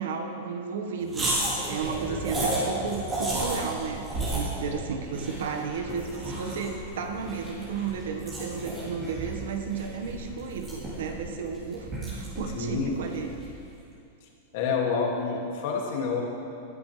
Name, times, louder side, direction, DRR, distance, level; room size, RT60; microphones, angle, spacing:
voice 1, 0.0-1.3 1.7-4.0 4.3-13.3, right 6 dB, 75° right, 4 dB, 1.5 m, -33 dB
sound 1, 1.1-13.6, right 1 dB, 20° right, 3.6 m, -33 dB
voice 2, 2.1-2.4 12.5-12.9 14.2-16.2, left 5 dB, 50° left, -1 dB, 2.3 m, -29 dB
20.0 x 10.5 x 3.4 m, 2.7 s
supercardioid pair, 165°, 0 cm